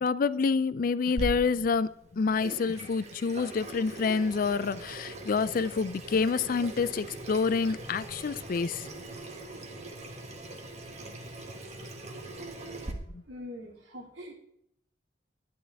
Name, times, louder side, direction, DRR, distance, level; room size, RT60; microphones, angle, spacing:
voice 1, 0.0-8.9, left 5 dB, 50° left, 0.4 m, -28 dB
Water tap faucet / Sink (filling or washing), 1.2-12.9, right 2 dB, 35° right, 1.2 m, -41 dB
voice 2, 13.3-14.3, left 1 dB, 90° right, 2.3 m, -43 dB
11.0 x 10.5 x 3.5 m
head